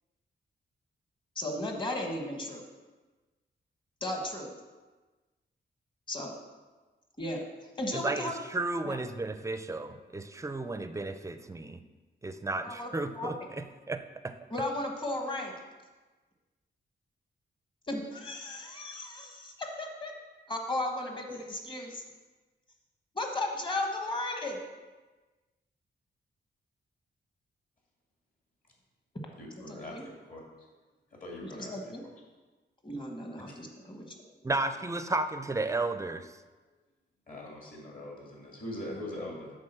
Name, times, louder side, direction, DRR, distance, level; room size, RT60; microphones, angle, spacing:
voice 1, 1.3-2.6 4.0-4.5 6.1-6.4 7.2-7.4 7.8-8.4 8.8-9.0 12.6-12.9 13.2-13.3 14.5-15.5 17.9-20.1 20.5-22.0 23.1-24.6 29.7-30.0 31.4-32.0 32.8-34.2, left 1 dB, 25° left, 2 dB, 1.2 m, -35 dB
voice 2, 7.9-11.8 12.2-14.3 34.4-36.3, right 2 dB, 15° right, 9 dB, 0.4 m, -33 dB
voice 3, 29.4-29.9 30.3-30.4 31.1-31.9 37.3-39.5, left 1 dB, 45° left, -2 dB, 2.4 m, -42 dB
8.4 x 3.9 x 6.7 m, 1.3 s
wide cardioid pair, 130°, 19 cm